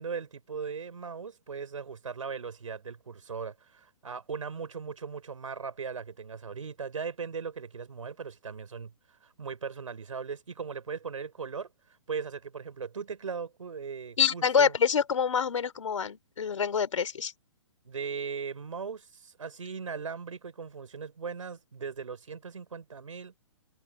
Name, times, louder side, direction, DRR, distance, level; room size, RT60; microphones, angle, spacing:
voice 1, 0.0-8.9 9.2-11.7 12.1-14.8 17.8-23.3, right 5 dB, 90° right, 4.5 m, -38 dB
voice 2, 14.2-17.3, left 7 dB, 80° left, 4.7 m, -26 dB
hypercardioid pair, 150°, 16 cm